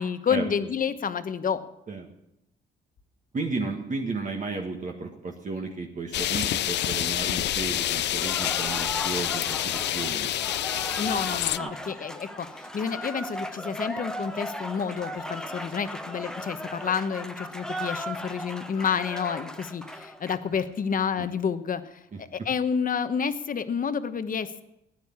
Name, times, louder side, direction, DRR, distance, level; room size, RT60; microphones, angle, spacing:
voice 1, 0.0-1.6 11.0-24.6, left 6 dB, 45° left, 11 dB, 1.1 m, -29 dB
voice 2, 3.3-10.3 11.6-11.7 21.2-21.3 22.1-22.5, right 3 dB, 40° right, 1 dB, 1.7 m, -33 dB
sound 1, 6.1-11.6, left 13 dB, 60° left, 0.4 m, -27 dB
Cheering / Applause, 8.1-20.7, equal, 5° left, 1.1 m, -37 dB
15.5 x 10.0 x 7.2 m, 0.86 s
cardioid pair, 90°, 20 cm